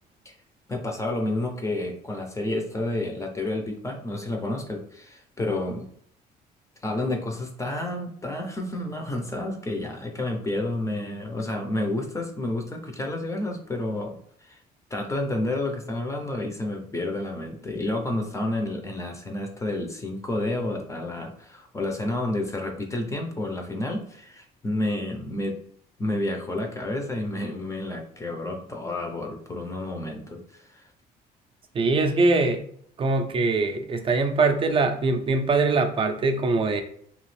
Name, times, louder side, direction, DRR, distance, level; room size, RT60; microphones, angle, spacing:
voice 1, 0.7-5.9 6.8-14.6 14.9-25.6 26.0-30.8, left 1 dB, 20° left, 3 dB, 0.6 m, -30 dB
voice 2, 31.7-32.6 33.0-36.8, right 3 dB, 30° right, 7 dB, 0.5 m, -22 dB
2.9 x 2.4 x 3.2 m, 0.63 s
cardioid pair, 110°, 17 cm